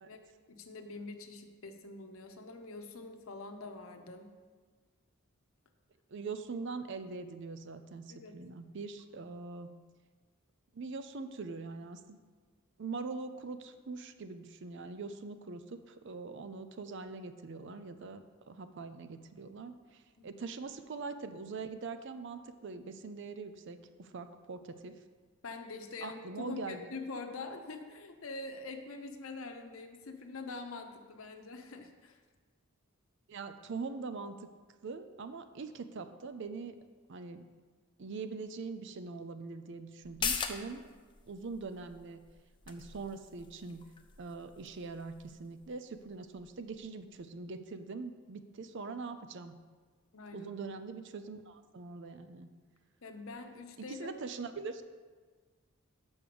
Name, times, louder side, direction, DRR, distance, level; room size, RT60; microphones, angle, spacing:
voice 1, 0.5-4.3 8.1-8.4 20.2-20.3 25.4-32.2 50.1-50.5 53.0-54.1, left 3 dB, 80° left, 5 dB, 0.8 m, -44 dB
voice 2, 6.1-9.7 10.7-12.2 12.8-25.0 26.0-26.9 33.3-34.3 34.8-36.8 37.1-37.4 38.0-40.8 41.3-42.2 42.7-43.8 44.2-49.6 50.3-52.5 53.9-54.8, right 4 dB, 60° right, 10 dB, 0.5 m, -43 dB
sound 1, 40.0-47.2 47.5-47.6, left 6 dB, 25° left, 0.5 m, -42 dB
6.2 x 5.3 x 6.8 m, 1.5 s
head